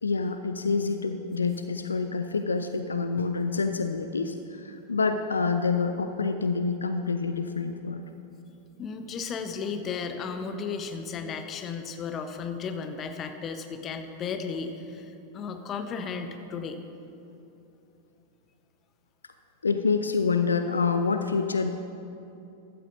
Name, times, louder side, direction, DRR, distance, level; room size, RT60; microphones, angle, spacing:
voice 1, 0.0-8.1 19.6-21.8, left 4 dB, 75° left, 8 dB, 0.4 m, -27 dB
voice 2, 8.8-16.8, left 5 dB, 30° left, 7 dB, 0.9 m, -34 dB
15.0 x 12.5 x 2.7 m, 2.7 s
figure-of-eight pair, 90°, 0 cm